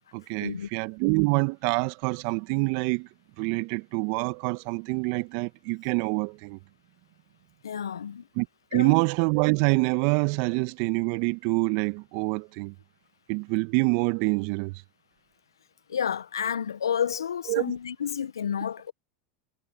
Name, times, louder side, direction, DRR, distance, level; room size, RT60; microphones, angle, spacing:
voice 1, 0.1-3.1 3.4-6.6 8.4-8.5 8.7-12.7 13.3-14.8 17.5-17.7, right 30 dB, 55° right, 1.7 m, -26 dB
voice 2, 7.6-8.3 8.7-9.0 15.9-18.9, left 8 dB, 80° left, 1.5 m, -30 dB
hypercardioid pair, 85°, 2 cm